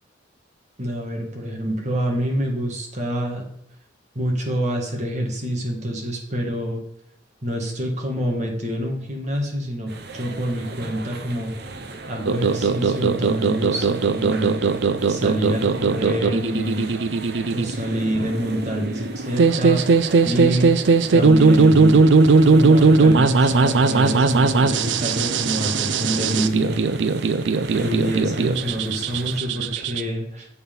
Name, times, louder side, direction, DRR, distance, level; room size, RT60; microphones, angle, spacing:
voice 1, 0.8-3.5 4.2-6.8 7.4-11.5 12.1-14.6 15.1-16.9 17.5-19.8 20.2-20.7 21.1-22.0 22.4-26.8 27.7-30.5, equal, 40° right, 0 dB, 1.9 m, -26 dB
sound 1, 9.9-29.4, right 2 dB, 60° right, 0.9 m, -38 dB
sound 2, 12.3-30.0, right 4 dB, 75° right, 0.5 m, -18 dB
7.8 x 5.6 x 5.4 m, 0.73 s
head